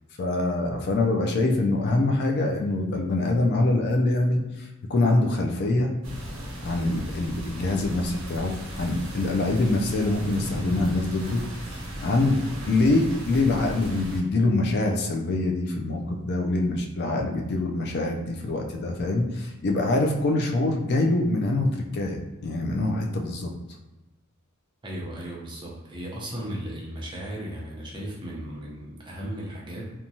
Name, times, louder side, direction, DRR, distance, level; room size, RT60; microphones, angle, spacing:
voice 1, 0.2-5.9 6.6-11.4 12.0-12.4 12.7-23.5, left 2 dB, 50° left, 2 dB, 0.4 m, -24 dB
sound 1, 6.0-14.2, right 1 dB, 70° right, 1.0 m, -36 dB
voice 2, 24.8-29.9, right 1 dB, 20° right, -4 dB, 0.6 m, -36 dB
2.9 x 2.2 x 2.6 m, 1.1 s
head